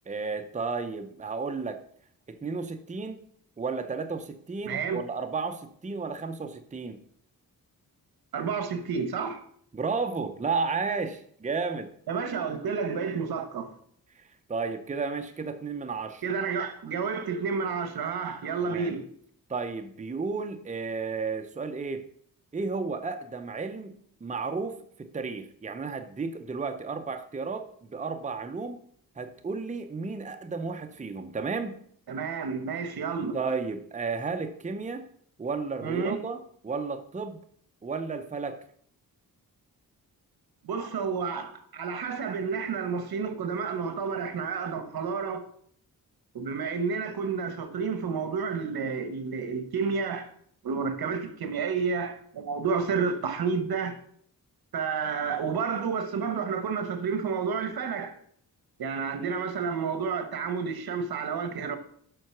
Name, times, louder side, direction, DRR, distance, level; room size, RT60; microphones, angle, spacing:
voice 1, 0.1-1.8 2.3-3.2 3.6-7.0 9.7-11.9 14.2-14.3 14.5-16.2 18.6-18.9 19.5-22.0 22.5-23.9 24.2-28.8 29.2-31.8 33.3-35.0 35.4-37.4 37.8-38.6, right 4 dB, 20° right, 0.7 m, -33 dB
voice 2, 4.6-5.0 8.3-9.4 12.1-13.7 16.2-19.1 32.1-33.4 35.8-36.2 40.6-45.4 46.3-50.3 50.6-53.9 54.7-58.2 58.8-61.8, right 5 dB, 75° right, 1.2 m, -30 dB
7.8 x 5.7 x 5.8 m
wide cardioid pair, 115°, 37 cm